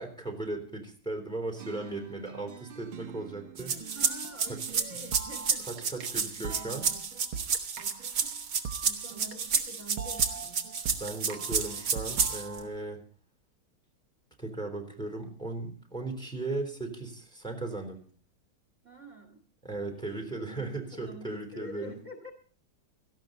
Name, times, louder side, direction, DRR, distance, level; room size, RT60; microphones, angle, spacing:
voice 1, 0.0-4.0 4.5-5.0 5.6-6.9 10.9-13.0 14.4-18.0 19.6-22.0, right 2 dB, ahead, 3 dB, 3.5 m, -37 dB
sound 1, 1.6-6.2 6.4-9.7 10.0-12.7, right 7 dB, 90° right, 2.0 m, -43 dB
sound 2, 3.6-12.6, right 6 dB, 55° right, 2.0 m, -30 dB
voice 2, 3.7-5.7 6.0-6.9 8.8-10.5 18.8-19.4 20.0-22.3, equal, 35° right, 5 dB, 2.5 m, -47 dB
17.5 x 15.0 x 4.0 m, 0.42 s
omnidirectional pair, 2.2 m